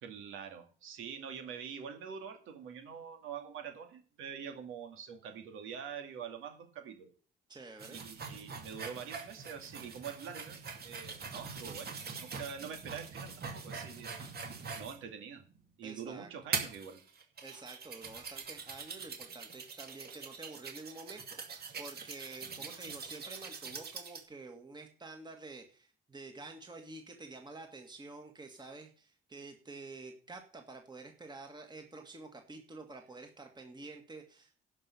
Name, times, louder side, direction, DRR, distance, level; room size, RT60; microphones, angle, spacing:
voice 1, 0.0-7.1 7.9-14.2 14.8-15.4 15.8-17.0 22.6-22.7, right 7 dB, 85° right, 5 dB, 2.3 m, -45 dB
voice 2, 7.5-8.0 15.8-16.3 17.4-34.6, right 3 dB, 20° right, 4 dB, 1.9 m, -49 dB
sound 1, 7.8-15.0 15.6-15.7 16.5-24.2, right 5 dB, 55° right, 2.5 m, -43 dB
11.0 x 5.5 x 8.3 m, 0.41 s
cardioid pair, 90°, 20 cm